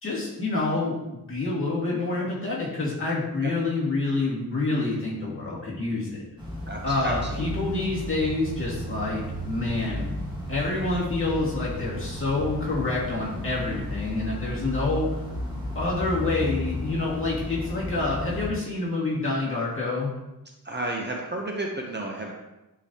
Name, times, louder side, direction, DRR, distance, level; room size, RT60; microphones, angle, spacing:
voice 1, 0.0-1.0 1.3-6.2 6.8-10.0 10.5-15.1 15.8-20.1, left 2 dB, 35° left, -7 dB, 2.0 m, -27 dB
sound 1, 6.4-18.5, left 1 dB, 10° right, 1.4 m, -34 dB
voice 2, 6.7-7.5 20.6-22.3, right 2 dB, 30° right, 0 dB, 0.6 m, -32 dB
9.9 x 3.9 x 2.8 m, 1.0 s
wide cardioid pair, 170°, 37 cm